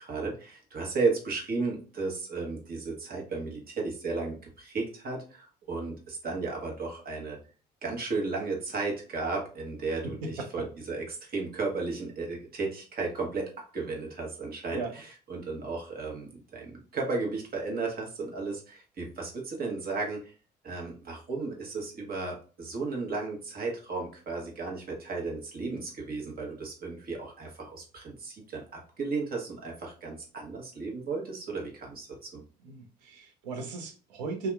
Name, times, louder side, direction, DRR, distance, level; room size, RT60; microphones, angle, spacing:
voice 1, 0.0-7.4 7.8-20.3 20.6-32.4, right 3 dB, 45° right, -1 dB, 1.1 m, -34 dB
voice 2, 10.0-10.5 14.7-14.9 32.6-34.5, right 3 dB, 85° right, 3 dB, 0.6 m, -36 dB
2.7 x 2.3 x 2.2 m, 0.37 s
hypercardioid pair, 55°, 21 cm